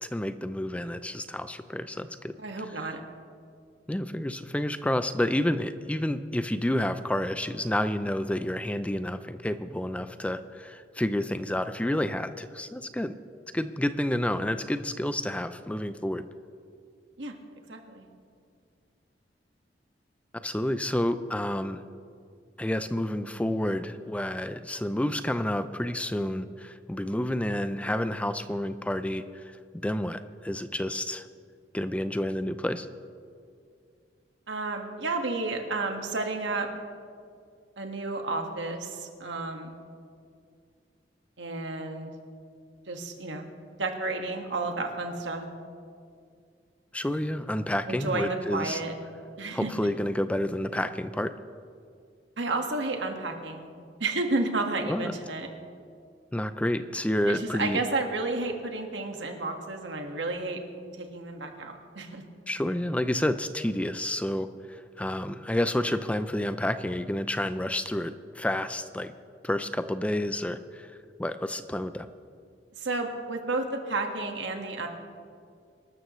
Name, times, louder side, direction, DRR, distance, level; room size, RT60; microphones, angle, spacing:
voice 1, 0.0-2.4 2.8-2.9 3.9-13.1 13.5-16.2 20.4-21.8 22.6-29.6 29.8-31.3 31.7-32.9 46.9-48.8 49.5-51.3 54.9-55.1 56.3-57.8 62.5-69.1 69.4-70.9 71.2-72.1, left 1 dB, 5° left, 11 dB, 0.4 m, -29 dB
voice 2, 2.4-3.0 17.2-17.3 17.7-18.1 34.5-36.7 37.8-39.8 41.4-42.1 42.9-43.5 43.8-45.4 47.9-48.9 49.4-49.7 52.4-53.7 54.0-55.5 57.2-60.6 61.0-62.2 72.8-74.9, right 3 dB, 90° right, 3 dB, 1.7 m, -31 dB
24.5 x 13.0 x 3.1 m, 2.2 s
head